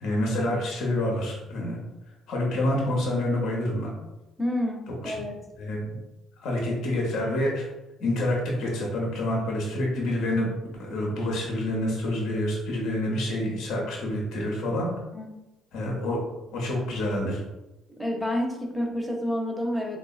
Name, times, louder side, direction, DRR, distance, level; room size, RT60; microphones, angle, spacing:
voice 1, 0.0-1.8 2.3-3.9 5.0-5.1 5.6-6.0 6.4-7.7 8.0-10.5 10.8-14.9 15.7-16.2 16.5-17.4, left 1 dB, 65° left, -2 dB, 0.8 m, -27 dB
voice 2, 4.4-5.4 15.1-15.4 17.9-20.0, left 1 dB, ahead, 0 dB, 0.8 m, -29 dB
3.4 x 2.5 x 2.4 m, 0.98 s
hypercardioid pair, 55°, 0 cm